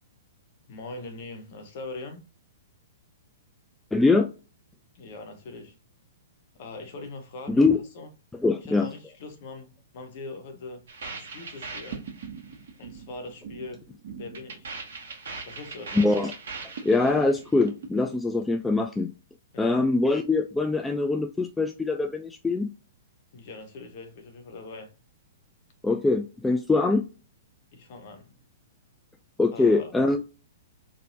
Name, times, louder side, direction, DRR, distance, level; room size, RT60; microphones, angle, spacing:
voice 1, 0.7-2.2 4.9-5.8 6.6-7.7 7.9-8.1 8.6-10.8 11.1-12.1 12.8-14.8 15.4-16.1 19.5-19.9 23.3-24.9 27.7-28.4 29.5-29.9, left 3 dB, 45° left, 1.0 m, -41 dB
voice 2, 3.9-4.3 7.5-7.8 8.4-8.9 16.0-16.3 16.8-19.1 19.6-22.7 25.8-27.0 29.4-30.2, left 3 dB, 5° left, 0.3 m, -23 dB
sound 1, 10.9-18.2, right 5 dB, 60° right, 0.9 m, -40 dB
4.2 x 2.6 x 2.7 m
figure-of-eight pair, 110°, 0 cm